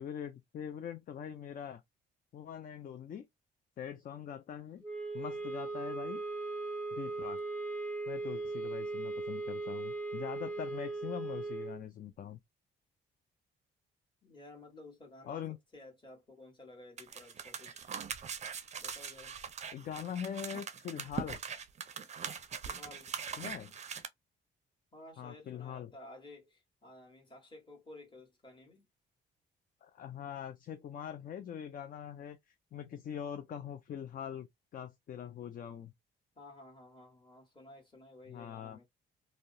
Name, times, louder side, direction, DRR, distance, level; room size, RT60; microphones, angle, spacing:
voice 1, 0.0-1.8 2.3-3.3 3.8-4.8 5.1-6.2 6.9-7.4 8.1-12.4 15.2-15.6 19.7-21.4 23.4-23.7 25.2-25.9 29.8-34.5 34.7-35.9 38.3-38.8, left 9 dB, 45° left, 0.4 m, -43 dB
sound 1, 4.8-11.8, right 3 dB, 5° left, 0.7 m, -38 dB
voice 2, 14.2-15.4 15.7-17.9 18.8-19.4 22.7-23.2 24.9-28.8 36.3-38.8, left 2 dB, 25° left, 1.5 m, -54 dB
sound 2, 17.0-24.1, right 7 dB, 35° right, 0.5 m, -42 dB
2.7 x 2.0 x 2.5 m
cardioid pair, 90°, 20 cm